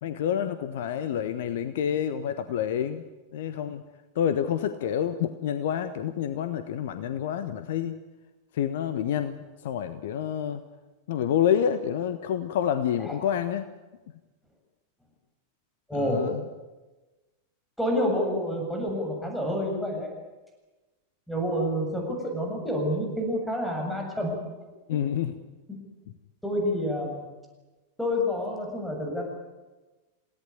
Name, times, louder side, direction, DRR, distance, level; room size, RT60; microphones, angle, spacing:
voice 1, 0.0-3.0 3.3-3.8 4.1-8.0 8.5-10.6 11.1-13.6 15.9-16.4 24.9-25.4, left 9 dB, 55° left, 11 dB, 1.3 m, -28 dB
voice 2, 15.9-16.3 17.8-20.1 21.3-24.3 25.7-25.8 26.4-27.2 28.0-29.2, equal, 5° left, 1 dB, 7.5 m, -28 dB
28.5 x 17.5 x 10.0 m, 1.2 s
figure-of-eight pair, 90°, 0 cm